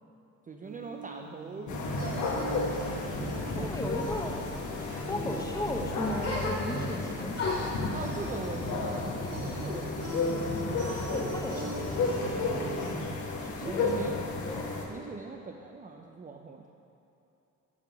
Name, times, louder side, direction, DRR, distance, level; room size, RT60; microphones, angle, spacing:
voice 1, 0.5-4.0 7.9-10.3 13.6-14.2 14.8-16.7, right 4 dB, 25° right, 2 dB, 0.5 m, -41 dB
sound 1, 0.6-12.9, right 1 dB, 55° right, 1.7 m, -42 dB
sound 2, 1.7-14.9, left 3 dB, 75° left, 1.1 m, -33 dB
voice 2, 3.6-4.4 5.0-7.4 11.1-12.7 13.4-14.0 14.4-14.6, left 1 dB, 10° left, 1 dB, 0.9 m, -36 dB
Female stabbed gasp, 6.2-7.0 7.3-10.1 10.4-11.2, left 2 dB, 55° left, 2.0 m, -37 dB
11.0 x 3.7 x 5.8 m, 2.9 s
cardioid pair, 90°, 30 cm